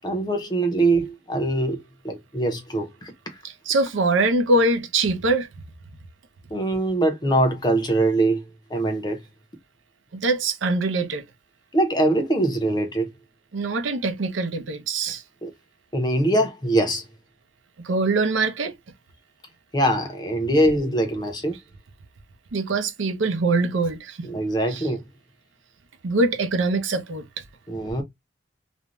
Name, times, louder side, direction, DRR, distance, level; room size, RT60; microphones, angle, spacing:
voice 1, 0.0-3.1 6.5-8.4 8.7-9.2 11.7-13.1 15.4-15.5 15.9-17.0 19.7-21.6 24.2-25.0 27.7-28.0, right 1 dB, 20° left, 0.6 m, -23 dB
voice 2, 3.4-5.5 10.1-11.2 13.5-15.2 17.8-18.7 22.5-24.3 24.7-24.9 26.0-27.3, right 2 dB, 85° right, 0.6 m, -23 dB
2.5 x 2.2 x 3.0 m
head